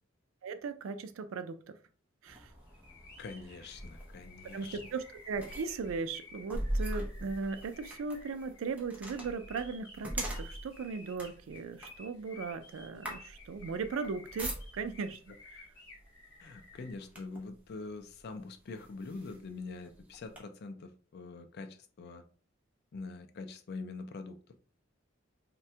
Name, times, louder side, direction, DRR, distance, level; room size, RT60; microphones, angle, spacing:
voice 1, 0.4-1.8 2.2-2.5 4.5-15.7, right 4 dB, 85° right, 0.4 m, -38 dB
sound 1, 2.3-15.1 15.9-16.1 16.5-17.6 18.2-18.3 18.7-20.4, right 1 dB, 5° right, 0.6 m, -42 dB
sound 2, 2.7-16.9, left 3 dB, 20° left, 1.1 m, -54 dB
voice 2, 3.2-4.8 16.4-22.2 22.9-24.6, left 3 dB, 55° left, 0.4 m, -44 dB
3.2 x 2.2 x 2.7 m
head